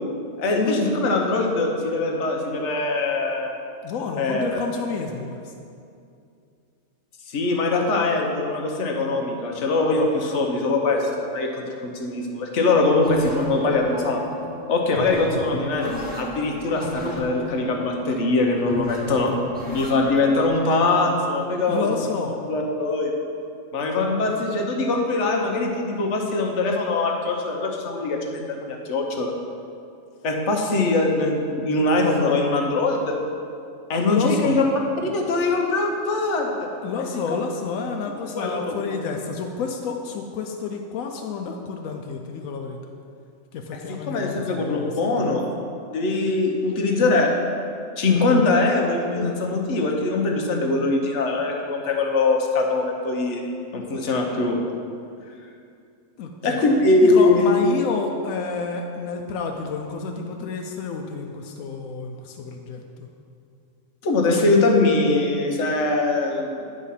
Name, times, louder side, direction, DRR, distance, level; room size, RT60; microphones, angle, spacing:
voice 1, 0.4-3.5 4.2-4.6 7.3-14.2 14.7-19.3 19.7-22.0 22.4-23.1 23.7-29.3 30.2-33.2 33.9-34.6 35.0-36.7 37.0-37.4 38.3-38.8 43.9-45.5 45.9-47.3 48.0-53.4 53.7-54.6 56.4-57.5 60.1-60.2 64.0-66.7, left 3 dB, 65° left, 1 dB, 1.2 m, -22 dB
voice 2, 3.8-5.4 21.7-22.4 34.1-34.6 36.8-42.8 43.5-45.3 56.2-56.6 57.0-63.1, left 5 dB, 85° left, 3 dB, 1.0 m, -30 dB
sound 1, 13.0-20.5, left 1 dB, 10° right, 1.0 m, -34 dB
9.8 x 3.7 x 5.6 m, 2.5 s
omnidirectional pair, 1.4 m